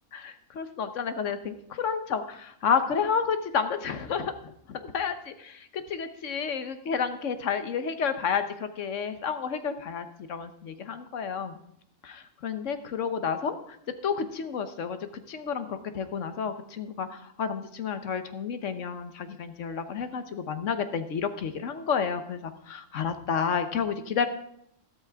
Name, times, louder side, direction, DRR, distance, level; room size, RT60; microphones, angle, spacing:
voice 1, 0.1-11.6 12.0-13.8 14.0-15.0 15.3-24.3, left 6 dB, 70° left, 10 dB, 1.3 m, -30 dB
13.0 x 13.0 x 3.5 m, 0.72 s
omnidirectional pair, 1.3 m